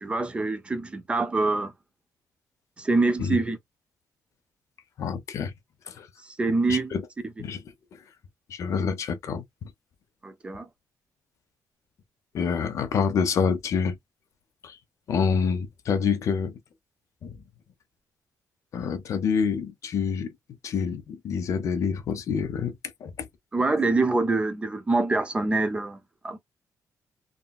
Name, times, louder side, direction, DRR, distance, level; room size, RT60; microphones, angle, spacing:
voice 1, 0.0-1.7 2.8-3.6 6.4-6.9 10.2-10.7 23.5-26.0 26.2-26.4, right 3 dB, 20° right, 0.3 m, -25 dB
voice 2, 5.0-5.5 6.0-6.1 6.5-7.0 7.4-7.6 8.5-9.7 12.3-14.0 14.6-14.8 15.1-16.6 17.2-17.4 18.7-20.3 20.6-22.7 23.0-23.3, left 6 dB, 55° left, 0.6 m, -27 dB
3.8 x 2.0 x 2.2 m
cardioid pair, 165°, 6 cm